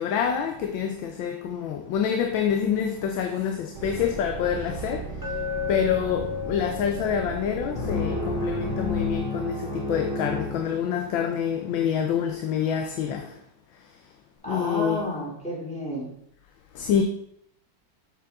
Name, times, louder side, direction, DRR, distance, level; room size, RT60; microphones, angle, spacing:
voice 1, 0.0-5.1 5.7-13.3 14.5-15.1 16.7-17.0, left 8 dB, 90° left, 1.5 m, -27 dB
sound 1, 3.7-9.1, right 4 dB, 70° right, 1.5 m, -36 dB
Glass, 5.2-9.3, left 9 dB, 15° right, 0.9 m, -34 dB
sound 2, 7.7-11.3, left 3 dB, 75° left, 2.3 m, -30 dB
voice 2, 14.4-16.1, equal, 5° left, 2.6 m, -31 dB
7.7 x 7.3 x 3.5 m
omnidirectional pair, 2.1 m